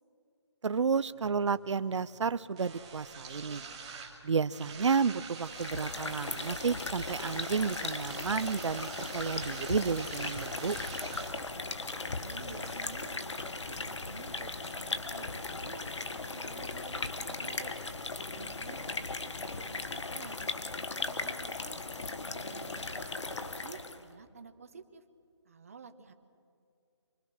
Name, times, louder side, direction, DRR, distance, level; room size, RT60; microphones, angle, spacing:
voice 1, 0.6-3.6 4.2-10.8 18.4-18.7, right 5 dB, 85° right, 15 dB, 0.5 m, -31 dB
sound 1, 0.7-18.7, right 5 dB, 15° right, 1.6 m, -48 dB
sound 2, 5.4-24.1, left 3 dB, 80° left, 1.4 m, -38 dB
voice 2, 11.9-17.7 18.3-20.4 20.9-25.0 25.4-26.1, right 5 dB, 30° right, 8 dB, 1.0 m, -51 dB
24.5 x 22.0 x 6.3 m, 2.5 s
hypercardioid pair, 175°, 15 cm